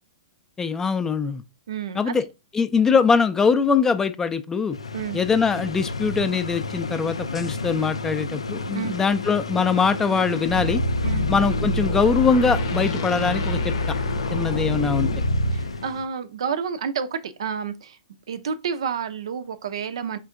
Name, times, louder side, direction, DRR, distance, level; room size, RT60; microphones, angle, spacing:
voice 1, 0.6-1.4 2.0-2.2 2.5-4.8 5.1-10.8 11.3-13.7 14.3-15.1, left 5 dB, 15° left, 0.3 m, -22 dB
voice 2, 1.7-2.3 4.9-5.2 8.7-9.0 11.0-11.3 15.5-18.0 18.3-20.2, right 7 dB, 65° right, 0.4 m, -30 dB
sound 1, 4.7-16.1, left 3 dB, 85° left, 0.4 m, -31 dB
sound 2, 10.4-15.7, left 1 dB, 60° left, 0.7 m, -26 dB
4.4 x 3.4 x 2.4 m
hypercardioid pair, 115°, 3 cm